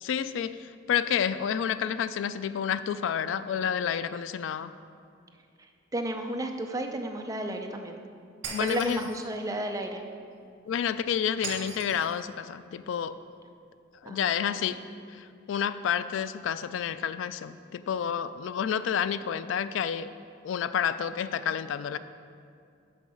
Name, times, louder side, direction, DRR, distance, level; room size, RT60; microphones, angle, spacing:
voice 1, 0.0-4.7 8.5-9.1 10.7-13.2 14.0-14.8 15.1-20.1 20.4-22.0, left 8 dB, 85° left, 14 dB, 0.3 m, -30 dB
voice 2, 5.9-8.0 8.6-10.0 14.1-14.8, right 1 dB, 20° right, 4 dB, 0.5 m, -33 dB
Shatter, 8.4-9.2 11.4-12.2, right 4 dB, 75° right, 1.7 m, -38 dB
6.7 x 5.4 x 6.3 m, 2.4 s
head